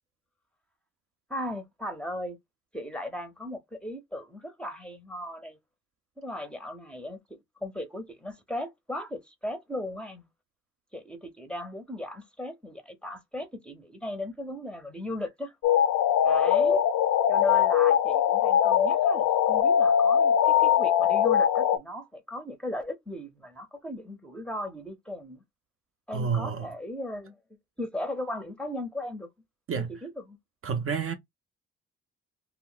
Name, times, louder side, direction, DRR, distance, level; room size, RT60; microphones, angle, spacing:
voice 1, 1.3-2.4 2.7-5.6 6.2-10.3 10.9-15.5 16.2-16.8 17.3-25.4 26.1-27.4 27.8-29.3 29.8-30.4, left 1 dB, 5° left, 0.6 m, -37 dB
sound 1, 15.6-21.8, left 9 dB, 70° left, 0.5 m, -22 dB
voice 2, 26.1-26.7 29.7-30.0 30.6-31.1, right 6 dB, 50° right, 0.5 m, -29 dB
2.2 x 2.1 x 3.7 m
cardioid pair, 90°, 30 cm